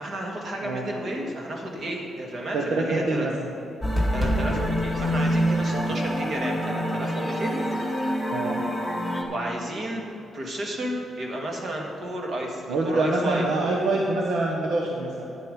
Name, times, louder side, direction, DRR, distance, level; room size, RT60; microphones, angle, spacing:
voice 1, 0.0-3.3 4.1-7.6 9.3-14.0, right 1 dB, 45° right, 0 dB, 1.9 m, -32 dB
voice 2, 0.6-0.9 2.5-3.5 5.7-5.9 8.3-8.6 12.7-15.2, right 2 dB, 85° right, -1 dB, 1.2 m, -26 dB
sound 1, 3.8-9.2, equal, 5° right, 1.5 m, -26 dB
10.5 x 9.0 x 5.3 m, 3.0 s
cardioid pair, 150°, 0 cm